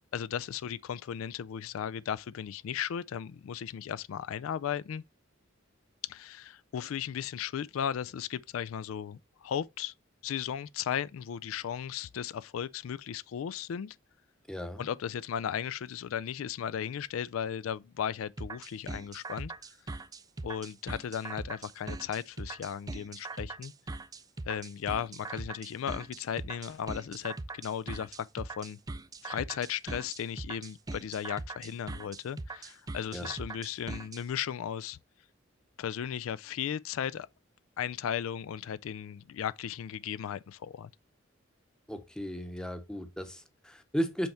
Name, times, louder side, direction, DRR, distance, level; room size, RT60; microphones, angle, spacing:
voice 1, 0.1-5.0 6.1-9.9 10.2-14.0 14.8-19.5 19.9-20.0 20.4-23.7 24.5-28.8 29.2-35.0 35.8-37.3 37.8-40.9, left 8 dB, 85° left, 0.3 m, -36 dB
voice 2, 14.5-14.9 33.1-33.3 41.9-44.3, equal, 5° left, 0.8 m, -35 dB
sound 1, 18.4-34.2, right 2 dB, 20° right, 0.4 m, -40 dB
7.9 x 3.5 x 4.3 m
head